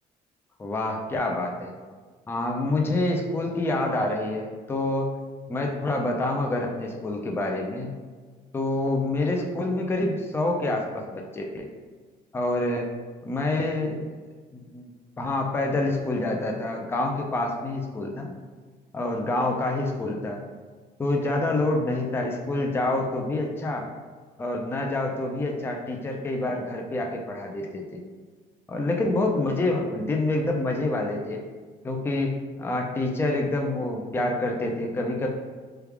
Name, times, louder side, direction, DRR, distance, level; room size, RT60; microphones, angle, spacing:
voice 1, 0.6-1.7 2.3-5.2 5.5-7.9 8.5-11.7 12.3-12.9 13.2-14.0 14.7-14.9 15.2-18.3 18.9-20.4 21.0-23.9 24.4-28.0 28.7-31.4 31.8-35.3, left 2 dB, 15° left, 1 dB, 0.4 m, -27 dB
3.2 x 2.3 x 3.3 m, 1.4 s
cardioid pair, 110°, 17 cm